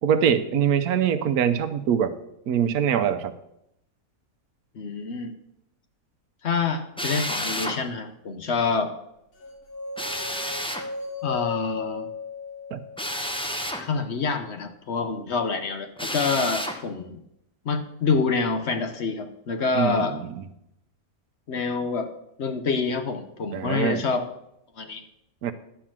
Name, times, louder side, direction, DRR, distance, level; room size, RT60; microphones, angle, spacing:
voice 1, 0.0-2.2 2.5-3.3 12.7-12.8 19.7-20.3 23.5-24.0 25.4-25.5, right 8 dB, 90° right, 10 dB, 1.2 m, -23 dB
voice 2, 4.7-5.3 6.4-8.9 11.2-12.1 13.8-17.2 17.6-20.2 21.5-22.1 22.4-24.3 24.8-25.0, left 4 dB, 55° left, 7 dB, 1.0 m, -27 dB
Drill, 7.0-7.8 10.0-10.9 13.0-13.9 16.0-16.8, equal, 5° left, 0.5 m, -30 dB
sound 1, 9.4-13.5, left 5 dB, 85° left, 2.0 m, -35 dB
11.5 x 4.6 x 7.4 m, 0.81 s
omnidirectional pair, 1.5 m